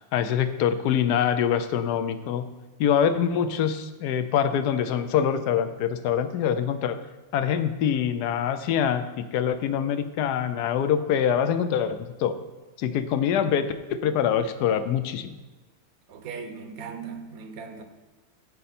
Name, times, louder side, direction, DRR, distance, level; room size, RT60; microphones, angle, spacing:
voice 1, 0.1-2.4 2.8-7.0 7.3-12.3 12.8-15.3, left 8 dB, 65° left, 10 dB, 1.1 m, -24 dB
voice 2, 16.1-17.8, right 5 dB, 55° right, 6 dB, 1.2 m, -38 dB
15.5 x 5.3 x 4.3 m, 1.1 s
omnidirectional pair, 2.2 m